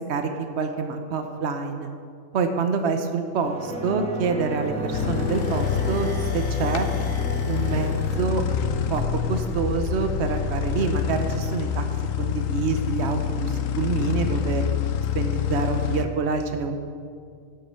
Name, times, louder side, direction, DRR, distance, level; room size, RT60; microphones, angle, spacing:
voice 1, 0.6-1.9 2.3-6.1 6.3-6.9 7.5-8.4 8.9-9.0 9.3-11.8 12.2-14.6 15.1-16.7, right 5 dB, 60° right, 6 dB, 1.1 m, -26 dB
sound 1, 3.4-12.4 12.7-12.8, equal, 5° left, 0.8 m, -36 dB
sound 2, 4.6-10.5, equal, 40° left, 2.0 m, -38 dB
sound 3, 4.9-16.0, left 8 dB, 85° left, 1.0 m, -27 dB
10.5 x 7.4 x 6.8 m, 2.2 s
omnidirectional pair, 1.3 m